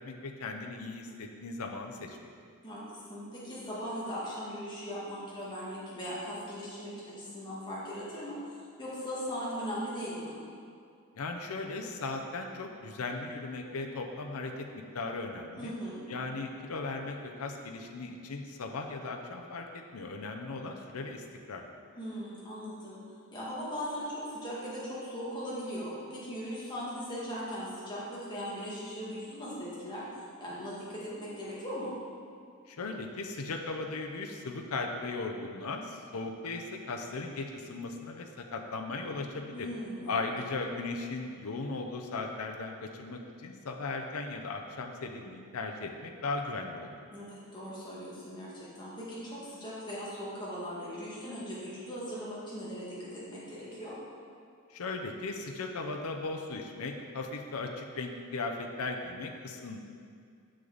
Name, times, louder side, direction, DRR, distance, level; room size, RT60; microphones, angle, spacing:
voice 1, 0.0-2.2 11.2-14.7 14.9-15.7 16.1-21.6 32.7-39.7 40.1-47.0 54.7-59.8, left 3 dB, 90° left, 3 dB, 0.6 m, -37 dB
voice 2, 2.6-10.3 15.6-16.0 22.0-23.0 23.3-30.0 30.4-31.9 39.5-40.2 47.1-53.9, equal, 20° left, -8 dB, 1.9 m, -39 dB
7.2 x 6.4 x 4.0 m, 2.3 s
head